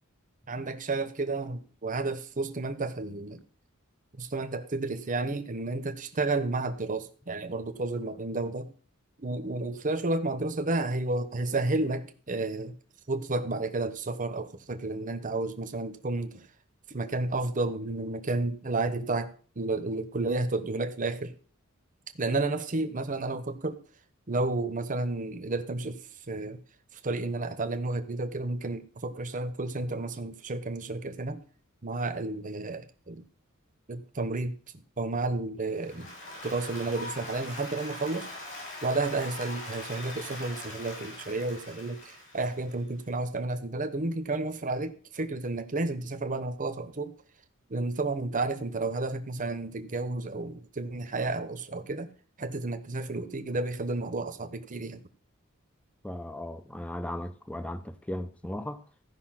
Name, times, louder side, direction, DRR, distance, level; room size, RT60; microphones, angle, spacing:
voice 1, 0.5-3.4 4.2-8.7 9.2-12.7 13.1-16.4 16.9-19.3 19.6-21.3 22.2-23.8 24.3-26.6 27.0-31.4 31.8-33.2 33.9-34.6 35.0-36.1 36.4-38.3 38.8-47.1 47.7-52.1 52.4-55.0, right 2 dB, 40° right, 1.0 m, -31 dB
Applause, 35.7-42.9, left 2 dB, 60° left, 6.8 m, -42 dB
voice 2, 56.0-58.8, left 1 dB, 5° left, 0.6 m, -36 dB
14.0 x 5.6 x 5.8 m
head